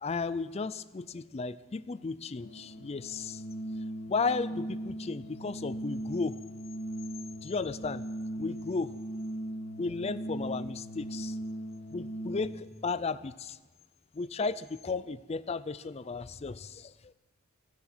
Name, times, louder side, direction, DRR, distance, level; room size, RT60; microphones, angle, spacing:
voice 1, 0.0-3.4 4.1-6.4 7.4-8.0 8.4-8.9 9.8-11.4 11.9-13.6 14.1-16.9, left 4 dB, 30° left, 16 dB, 0.4 m, -34 dB
Organ, 2.4-12.7, right 1 dB, 60° left, 1.7 m, -39 dB
15.5 x 12.0 x 6.1 m, 1.2 s
head